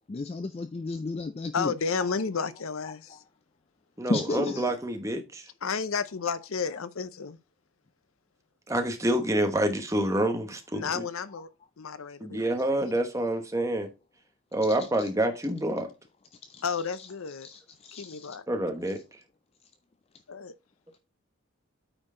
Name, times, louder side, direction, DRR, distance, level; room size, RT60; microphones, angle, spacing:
voice 1, 0.1-2.1 2.8-3.2 4.1-4.8 14.6-15.1 16.5-17.1 17.4-18.4, left 3 dB, 30° left, 0.3 m, -34 dB
voice 2, 1.5-3.2 5.6-7.4 10.7-11.5 11.8-12.4 16.6-17.5 17.9-18.4 20.3-20.5, left 5 dB, 75° left, 0.6 m, -32 dB
voice 3, 4.0-5.4 8.7-11.0 12.2-13.9 14.5-15.9 18.5-19.0, right 1 dB, 15° right, 1.0 m, -27 dB
8.8 x 4.5 x 3.7 m
head